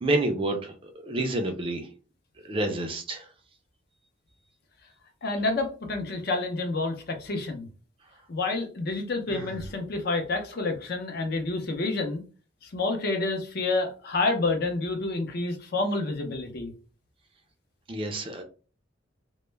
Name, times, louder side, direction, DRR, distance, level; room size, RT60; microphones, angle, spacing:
voice 1, 0.0-1.9 2.4-3.3 17.9-18.4, right 2 dB, 25° right, 5 dB, 0.4 m, -29 dB
voice 2, 5.2-7.7 8.3-12.2 12.7-16.7, left 3 dB, 50° left, 4 dB, 0.5 m, -28 dB
Sigh, 9.3-9.8, right 2 dB, 90° right, 0.6 m, -40 dB
2.2 x 2.1 x 3.1 m, 0.37 s
head